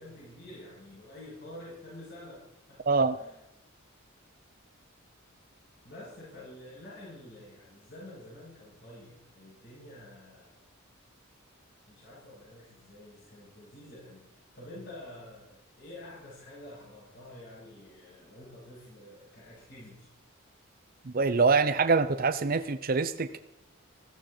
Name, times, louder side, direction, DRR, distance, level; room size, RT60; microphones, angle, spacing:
voice 1, 0.0-3.4 5.8-10.6 11.9-20.1, left 1 dB, 60° left, -9 dB, 7.4 m, -48 dB
voice 2, 21.0-23.4, right 4 dB, 45° right, 10 dB, 0.6 m, -25 dB
15.0 x 14.0 x 4.4 m, 0.86 s
head